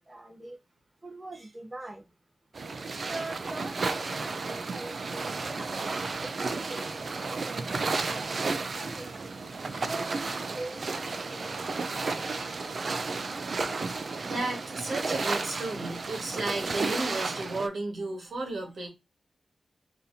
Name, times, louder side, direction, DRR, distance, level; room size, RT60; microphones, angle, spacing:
voice 1, 0.1-0.6 1.0-2.0 3.0-6.0 6.2-9.1 9.7-11.5, right 2 dB, 25° right, 1.0 m, -43 dB
sound 1, 2.5-17.7, right 3 dB, 50° right, 0.4 m, -33 dB
voice 2, 13.4-13.7 14.2-18.9, right 2 dB, 75° right, 1.5 m, -34 dB
4.0 x 2.8 x 2.6 m
wide cardioid pair, 140°, 0 cm